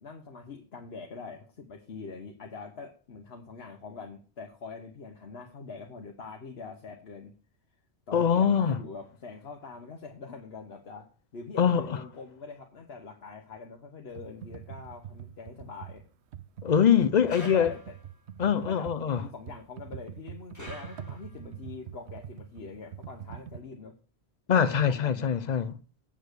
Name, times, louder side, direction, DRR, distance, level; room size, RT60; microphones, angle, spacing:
voice 1, 0.0-7.3 8.1-16.0 17.1-17.9 18.5-24.0 24.5-25.2, left 4 dB, 70° left, 1.3 m, -44 dB
voice 2, 8.1-8.8 11.6-12.0 16.6-17.7 18.4-19.2 24.5-25.8, left 8 dB, 50° left, 0.6 m, -23 dB
Computer keyboard, 14.1-23.6, right 9 dB, 85° right, 0.9 m, -44 dB
sound 1, 17.3-18.2 20.5-21.5, left 1 dB, 15° left, 4.9 m, -47 dB
8.6 x 6.4 x 6.7 m
omnidirectional pair, 1.1 m